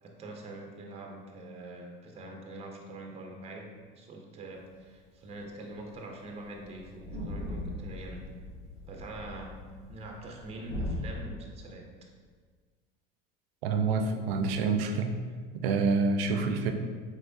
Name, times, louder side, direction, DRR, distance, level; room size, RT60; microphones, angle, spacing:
voice 1, 0.0-8.3 8.9-11.9, right 2 dB, 20° right, 2 dB, 0.5 m, -44 dB
sound 1, 5.4-5.5 5.7-5.9 6.2-6.3 6.5-11.0, left 1 dB, 65° left, 1.0 m, -39 dB
voice 2, 13.6-15.1 15.6-16.7, right 4 dB, 80° right, 6 dB, 0.5 m, -27 dB
3.3 x 3.3 x 2.6 m, 1.5 s
hypercardioid pair, 85°, 29 cm